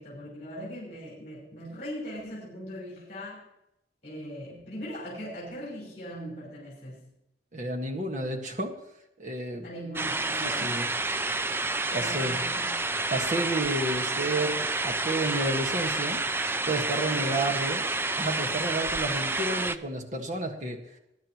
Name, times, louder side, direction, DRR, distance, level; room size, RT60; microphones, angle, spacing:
voice 1, 0.0-3.5 4.0-7.1 9.6-10.8 11.9-12.8 17.0-17.7, equal, 40° left, 5.3 m, -40 dB
voice 2, 7.5-8.7 9.2-9.7 10.4-10.9 11.9-12.4 13.1-16.2 16.7-17.8 18.2-20.8, right 2 dB, 45° right, 1.7 m, -31 dB
sound 1, 10.0-19.8, right 3 dB, 15° right, 0.4 m, -29 dB
21.0 x 10.0 x 3.1 m
head